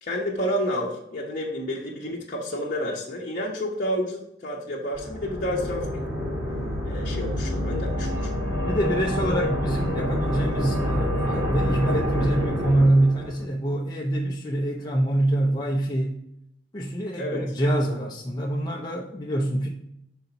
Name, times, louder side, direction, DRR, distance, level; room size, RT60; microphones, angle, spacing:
voice 1, 0.0-6.0 6.8-8.3 17.2-17.4, equal, 50° left, -5 dB, 1.0 m, -30 dB
sound 1, 4.9-13.5, equal, 20° right, 1.9 m, -27 dB
voice 2, 8.7-16.2 16.7-19.7, right 1 dB, 25° left, -2 dB, 0.7 m, -25 dB
5.6 x 4.0 x 5.7 m, 0.77 s
head